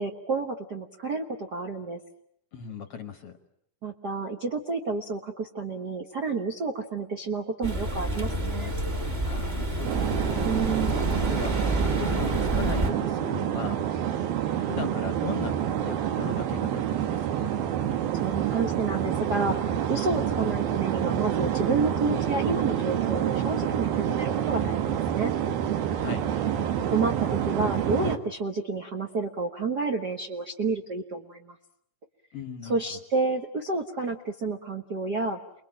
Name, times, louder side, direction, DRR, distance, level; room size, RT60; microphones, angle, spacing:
voice 1, 0.0-2.0 3.8-8.8 10.4-11.0 18.2-25.3 26.9-31.6 32.6-35.4, right 4 dB, 65° right, 4 dB, 0.9 m, -30 dB
voice 2, 2.5-3.4 9.2-10.5 11.2-11.6 12.0-13.8 14.6-17.5 25.9-26.3 32.3-32.7, left 7 dB, 60° left, 8 dB, 1.6 m, -38 dB
sound 1, 7.6-12.9, right 1 dB, 20° right, 2.0 m, -28 dB
sound 2, 9.8-28.2, right 10 dB, 90° right, 3.3 m, -28 dB
29.5 x 22.0 x 8.8 m, 0.72 s
omnidirectional pair, 4.1 m